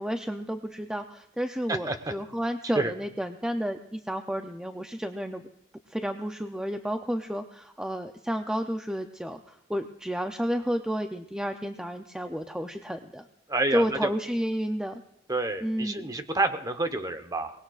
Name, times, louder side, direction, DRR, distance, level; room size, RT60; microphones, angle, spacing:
voice 1, 0.0-5.4 5.9-13.3 13.7-15.0 15.6-16.1, equal, 5° right, 6 dB, 0.5 m, -31 dB
voice 2, 13.5-14.0 15.3-17.5, right 2 dB, 20° right, 8 dB, 1.0 m, -28 dB
23.5 x 19.5 x 2.4 m, 0.82 s
head